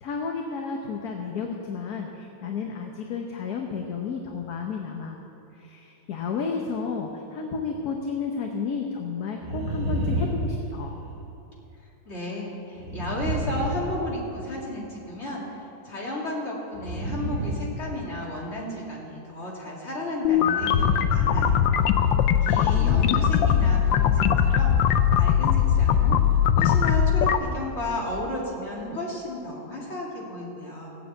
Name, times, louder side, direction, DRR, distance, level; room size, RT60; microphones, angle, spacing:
voice 1, 0.0-5.2 5.5-11.0 22.5-23.1, left 5 dB, 60° left, 2 dB, 1.4 m, -32 dB
sound 1, 9.4-11.3 12.8-14.6 16.7-18.4 20.4-21.7 22.0-22.1, right 1 dB, 45° right, 1.3 m, -30 dB
voice 2, 11.8-21.7 22.0-22.1 22.4-31.0, left 1 dB, 35° left, -4 dB, 2.9 m, -33 dB
sound 2, 20.2-27.4, left 8 dB, 85° left, 1.4 m, -20 dB
17.0 x 7.5 x 8.2 m, 2.8 s
omnidirectional pair, 2.0 m